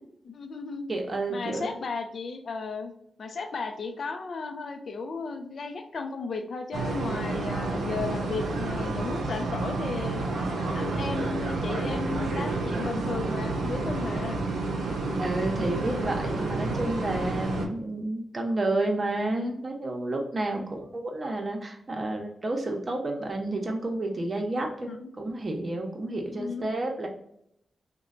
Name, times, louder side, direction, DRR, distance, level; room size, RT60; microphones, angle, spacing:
voice 1, 0.2-0.9 1.3-2.9 3.2-10.3 10.7-14.5 20.6-20.7 24.8-25.1 26.3-26.7, left 4 dB, 65° left, 6 dB, 0.4 m, -34 dB
voice 2, 0.9-1.8 15.2-27.1, right 2 dB, 45° right, 2 dB, 0.7 m, -30 dB
sound 1, 6.7-17.7, right 3 dB, 90° right, 0.5 m, -30 dB
3.0 x 2.2 x 2.5 m, 0.74 s
cardioid pair, 55°, 0 cm